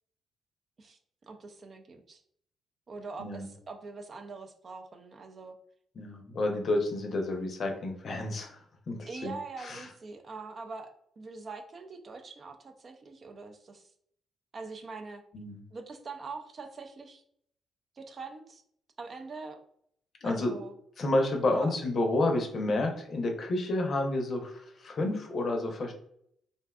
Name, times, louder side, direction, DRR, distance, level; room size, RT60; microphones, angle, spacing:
voice 1, 1.3-2.2 2.9-5.5 9.1-13.9 14.5-15.2 15.7-17.2 18.0-18.6 19.0-19.6 20.2-20.7 21.5-21.8, right 4 dB, 45° right, 5 dB, 0.4 m, -43 dB
voice 2, 6.0-9.3 9.6-9.9 15.3-15.6 20.2-20.5 21.0-25.9, left 2 dB, 55° left, 3 dB, 0.6 m, -30 dB
2.6 x 2.2 x 2.2 m, 0.68 s
supercardioid pair, 65°, 0 cm